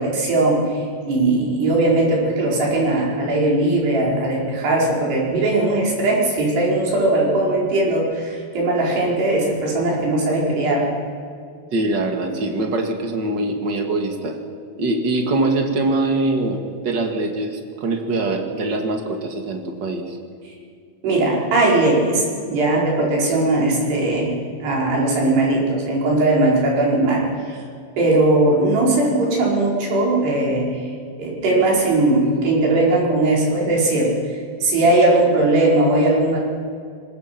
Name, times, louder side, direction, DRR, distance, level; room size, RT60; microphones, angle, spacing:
voice 1, 0.0-10.9 21.0-24.4 24.6-27.6 28.0-30.9 31.2-36.4, right 2 dB, 80° right, -3 dB, 7.0 m, -19 dB
voice 2, 11.7-14.4 14.8-20.2, right 2 dB, 40° right, 4 dB, 1.8 m, -23 dB
24.0 x 20.5 x 6.0 m, 2.3 s
omnidirectional pair, 4.7 m